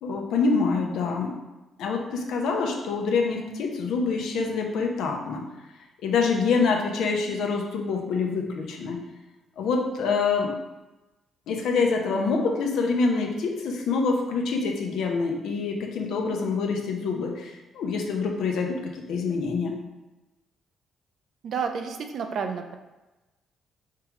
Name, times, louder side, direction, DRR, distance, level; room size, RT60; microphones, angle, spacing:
voice 1, 0.0-1.3 1.8-5.4 6.0-9.0 9.6-10.5 11.5-19.7, left 4 dB, 80° left, 2 dB, 0.8 m, -26 dB
voice 2, 21.4-22.7, right 6 dB, 65° right, 6 dB, 0.5 m, -30 dB
4.6 x 3.7 x 3.1 m, 1.1 s
cardioid pair, 90°, 0 cm